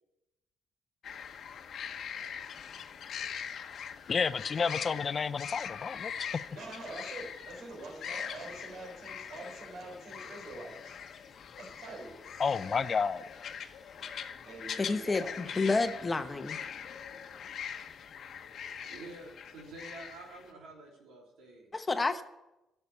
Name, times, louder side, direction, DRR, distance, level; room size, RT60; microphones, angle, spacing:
sound 1, 1.0-20.5, left 7 dB, 65° left, 1.0 m, -42 dB
voice 1, 4.1-6.1 12.4-13.2, left 5 dB, 40° left, 14 dB, 0.5 m, -30 dB
voice 2, 6.5-11.0 11.6-12.1 14.4-15.4, right 2 dB, 70° right, 1 dB, 4.1 m, -45 dB
voice 3, 14.8-16.6 21.7-22.2, left 3 dB, 25° left, 8 dB, 0.9 m, -30 dB
voice 4, 18.9-22.1, right 2 dB, 90° right, -1 dB, 3.2 m, -49 dB
11.5 x 6.8 x 8.5 m, 0.96 s
cardioid pair, 90°, 0 cm